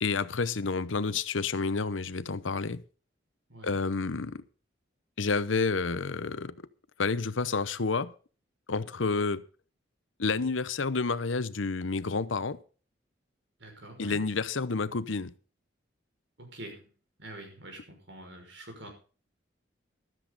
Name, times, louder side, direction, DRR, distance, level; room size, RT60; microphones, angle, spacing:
voice 1, 0.0-2.8 3.6-4.4 5.2-6.6 7.0-8.1 8.7-9.4 10.2-12.6 14.0-15.3, left 4 dB, 85° left, 0.9 m, -29 dB
voice 2, 13.6-14.2 16.4-16.9 17.2-18.9, right 1 dB, 70° right, 6.0 m, -46 dB
14.5 x 13.0 x 4.1 m
head